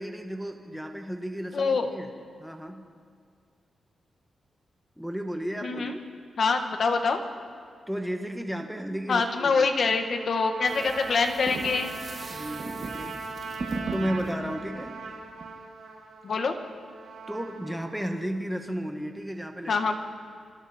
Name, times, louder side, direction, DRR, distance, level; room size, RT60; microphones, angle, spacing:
voice 1, 0.0-2.1 2.4-2.8 5.0-6.0 7.9-9.7 12.3-13.2 13.9-15.0 17.3-19.9, equal, ahead, 3 dB, 1.7 m, -33 dB
voice 2, 1.5-2.0 5.6-5.9 6.4-7.2 9.1-11.9 16.2-16.6 19.7-19.9, left 4 dB, 50° left, 5 dB, 1.8 m, -25 dB
Trumpet, 10.1-18.2, right 4 dB, 90° right, 4.6 m, -40 dB
sound 1, 10.6-15.5, right 3 dB, 40° right, 2.3 m, -38 dB
27.0 x 26.0 x 4.6 m, 2.1 s
wide cardioid pair, 175°, 0 cm